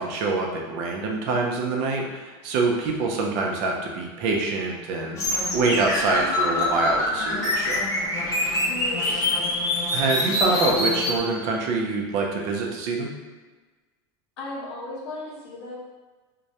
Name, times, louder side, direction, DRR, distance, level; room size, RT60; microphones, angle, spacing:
voice 1, 0.0-7.8 9.9-13.1, right 3 dB, 60° right, 0 dB, 0.5 m, -25 dB
sound 1, 5.2-11.2, left 1 dB, 25° left, 0.6 m, -25 dB
voice 2, 8.7-9.6 14.4-15.7, left 2 dB, 70° left, -3 dB, 0.8 m, -36 dB
2.2 x 2.0 x 2.8 m, 1.3 s
supercardioid pair, 115°, 14 cm